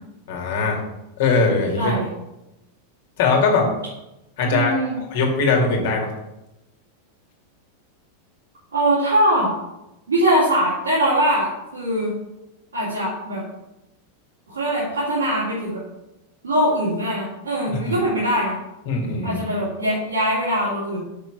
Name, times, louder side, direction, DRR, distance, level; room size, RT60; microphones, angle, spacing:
voice 1, 0.3-0.8 1.2-1.9 3.2-3.7 4.4-6.1 17.7-18.0 18.9-19.4, left 4 dB, 50° left, 1 dB, 2.3 m, -21 dB
voice 2, 4.4-5.0 8.7-9.6 10.1-12.1 12.7-13.4 14.5-15.8 16.4-18.6 19.2-21.0, right 1 dB, 75° right, -9 dB, 3.0 m, -22 dB
6.7 x 6.2 x 6.1 m, 0.92 s
figure-of-eight pair, 90°, 0 cm